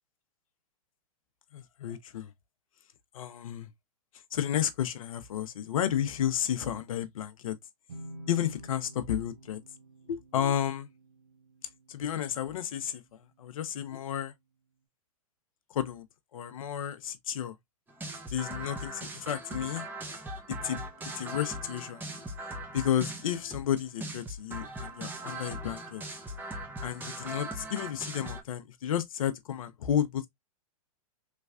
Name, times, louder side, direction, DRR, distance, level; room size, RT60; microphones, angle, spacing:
voice 1, 1.5-2.3 3.1-3.7 4.3-7.6 8.3-9.6 10.1-10.9 11.9-14.3 15.7-16.0 16.3-17.5 18.3-19.9 20.5-20.8 21.2-22.0 22.7-26.0 26.8-30.3, left 10 dB, 65° left, 0.7 m, -32 dB
sound 1, 7.9-13.5, right 1 dB, 70° right, 1.3 m, -50 dB
sound 2, 17.9-28.4, right 1 dB, 10° right, 0.8 m, -40 dB
3.3 x 3.1 x 2.4 m
hypercardioid pair, 115°, 19 cm